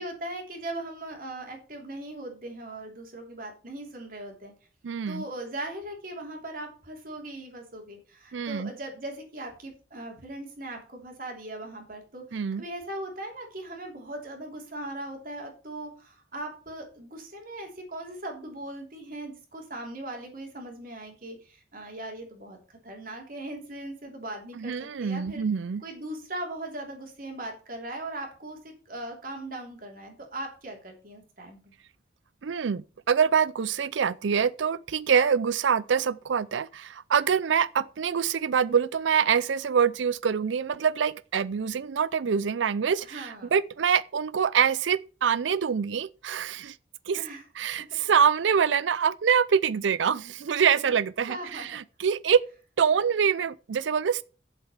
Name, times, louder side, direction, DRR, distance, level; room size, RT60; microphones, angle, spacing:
voice 1, 0.0-4.5 5.1-24.7 25.0-25.5 25.8-31.6 43.0-43.6 47.1-47.4 47.8-48.0 51.3-51.8, right 1 dB, 50° right, 3.2 m, -39 dB
voice 2, 4.8-5.2 8.3-8.7 12.3-12.6 24.6-25.8 32.4-46.7 47.1-47.2 47.6-52.4 52.8-54.2, right 7 dB, 85° right, 0.5 m, -25 dB
8.0 x 7.6 x 7.1 m
head